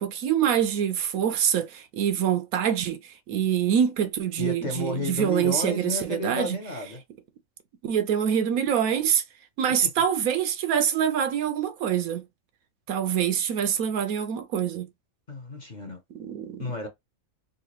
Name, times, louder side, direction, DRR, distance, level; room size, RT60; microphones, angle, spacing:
voice 1, 0.0-6.6 7.8-9.2 9.6-12.2 12.9-14.9 16.1-16.7, right 9 dB, 85° right, 1.1 m, -25 dB
voice 2, 4.4-7.0 15.3-16.0 16.6-16.9, left 2 dB, 40° left, 0.8 m, -32 dB
3.9 x 2.4 x 2.8 m
omnidirectional pair, 1.5 m